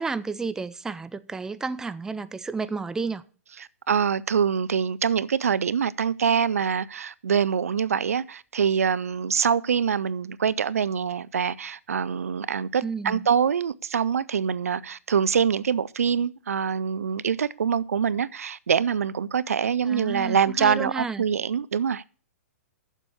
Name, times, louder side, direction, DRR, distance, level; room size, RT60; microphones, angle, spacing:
voice 1, 0.0-3.2 12.8-13.3 19.9-21.2, right 4 dB, 5° right, 0.4 m, -31 dB
voice 2, 3.6-22.0, right 7 dB, 80° right, 0.5 m, -25 dB
7.3 x 6.9 x 7.9 m
hypercardioid pair, 125°, 8 cm